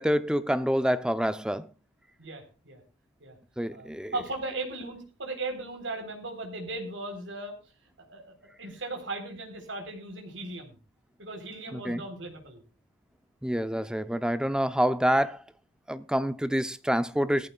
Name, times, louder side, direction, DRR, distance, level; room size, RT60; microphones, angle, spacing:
voice 1, 0.0-1.7 3.6-4.1 11.7-12.0 13.4-15.4 15.9-17.5, equal, 5° right, 0.6 m, -27 dB
voice 2, 2.2-2.8 3.2-3.4 3.7-7.5 8.0-10.8 11.2-12.6, right 2 dB, 80° right, 3.9 m, -37 dB
19.0 x 14.5 x 2.4 m
head